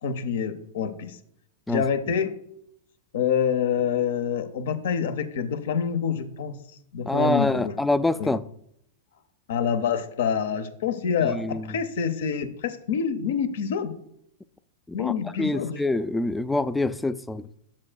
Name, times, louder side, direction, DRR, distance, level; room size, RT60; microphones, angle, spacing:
voice 1, 0.0-1.2 1.7-2.3 3.1-6.5 6.9-7.7 8.2-8.3 9.5-13.9 14.9-15.8, left 7 dB, 70° left, 0.7 m, -26 dB
voice 2, 7.1-8.4 11.2-11.8 15.0-15.1 15.4-17.4, left 2 dB, 5° left, 0.3 m, -25 dB
7.4 x 7.4 x 2.3 m
hypercardioid pair, 105°, 0 cm